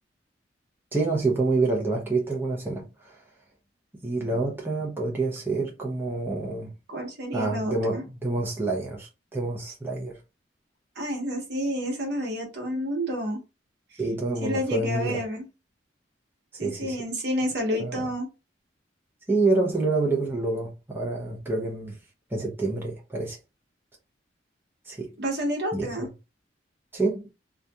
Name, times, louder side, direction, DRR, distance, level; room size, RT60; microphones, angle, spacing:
voice 1, 0.9-3.2 4.0-6.7 7.3-10.2 14.0-15.2 16.5-17.0 17.8-18.0 19.3-22.0 22.3-23.4 24.9-25.1 25.7-25.9 26.9-27.2, right 3 dB, 10° right, 0.6 m, -27 dB
voice 2, 6.9-8.0 11.0-13.4 14.4-15.5 16.6-18.3 25.2-26.1, equal, 65° right, 1.0 m, -29 dB
2.7 x 2.4 x 2.2 m
head